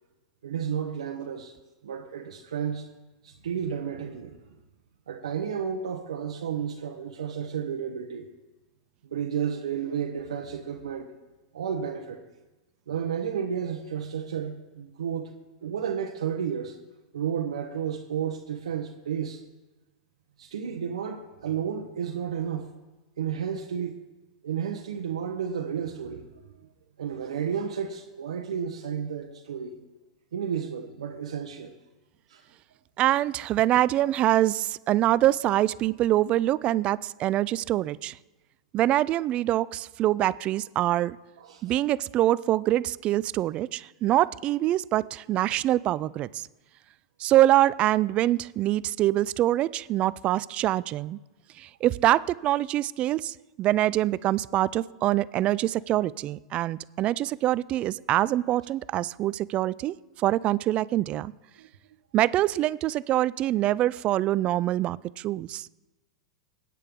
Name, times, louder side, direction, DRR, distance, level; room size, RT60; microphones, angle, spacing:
voice 1, 0.4-1.5 1.8-2.9 3.2-4.4 5.1-8.3 9.0-11.1 11.5-12.2 12.9-15.3 15.6-16.8 17.1-19.4 20.4-22.7 23.2-23.9 24.4-26.3 27.0-29.8 30.3-31.7 32.3-32.4 41.4-41.8 61.6-61.7, right 8 dB, 85° right, 1 dB, 1.0 m, -32 dB
voice 2, 33.0-38.2 38.7-41.2 41.6-46.5 47.2-51.2 51.6-61.3 62.1-65.7, right 14 dB, 35° right, 20 dB, 0.3 m, -25 dB
21.0 x 9.2 x 3.7 m, 1.1 s
hypercardioid pair, 115°, 3 cm